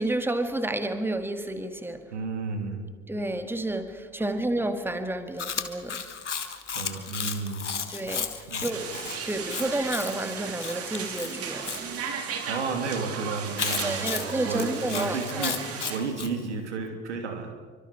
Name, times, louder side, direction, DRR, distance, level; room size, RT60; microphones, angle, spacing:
voice 1, 0.0-2.0 3.1-6.0 7.9-8.9 9.2-11.7 13.8-15.6, right 1 dB, 5° right, 2.0 m, -30 dB
voice 2, 2.1-2.9 6.7-7.9 8.5-8.7 12.5-15.6 15.9-17.5, right 4 dB, 75° right, 2.9 m, -32 dB
Chewing mastication, 5.4-11.8 13.6-16.3, left 6 dB, 85° left, 1.4 m, -34 dB
sound 1, 8.7-16.0, right 6 dB, 40° right, 3.4 m, -35 dB
28.0 x 24.5 x 4.9 m
figure-of-eight pair, 65°, 35 cm